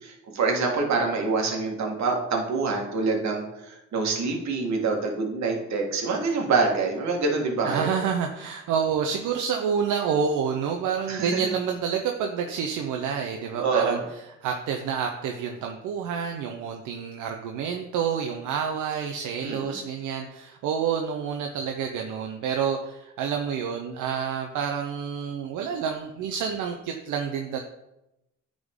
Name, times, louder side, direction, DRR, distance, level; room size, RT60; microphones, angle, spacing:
voice 1, 0.0-8.0 11.1-11.5 13.6-14.0 19.4-19.8, right 4 dB, 65° right, 1 dB, 1.6 m, -26 dB
voice 2, 7.6-14.0 14.4-27.6, right 7 dB, 85° right, 3 dB, 0.7 m, -28 dB
9.5 x 3.8 x 3.6 m, 0.90 s
cardioid pair, 90°, 30 cm